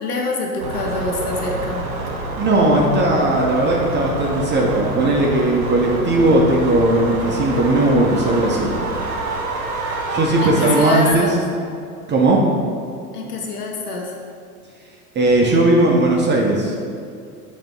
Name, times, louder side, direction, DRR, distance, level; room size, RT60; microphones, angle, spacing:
voice 1, 0.0-1.9 10.4-11.4 13.1-14.1, left 2 dB, 80° left, 0 dB, 1.2 m, -25 dB
sound 1, 0.6-11.1, right 2 dB, 55° right, 1.5 m, -27 dB
voice 2, 2.4-8.7 10.1-11.3 12.1-12.4 15.1-16.7, right 2 dB, 25° right, -2 dB, 0.9 m, -17 dB
7.2 x 3.1 x 5.3 m, 2.4 s
hypercardioid pair, 90°, 46 cm